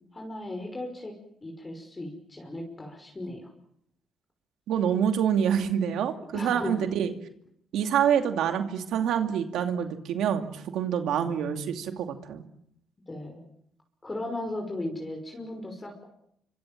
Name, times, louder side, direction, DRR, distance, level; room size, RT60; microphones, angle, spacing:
voice 1, 0.1-3.5 6.3-6.9 13.1-13.4 14.0-16.1, left 1 dB, 25° left, 2 dB, 5.8 m, -36 dB
voice 2, 4.7-7.1 7.7-12.4, right 8 dB, 80° right, 6 dB, 2.6 m, -26 dB
27.0 x 25.0 x 7.6 m, 0.75 s
cardioid pair, 90°, 0 cm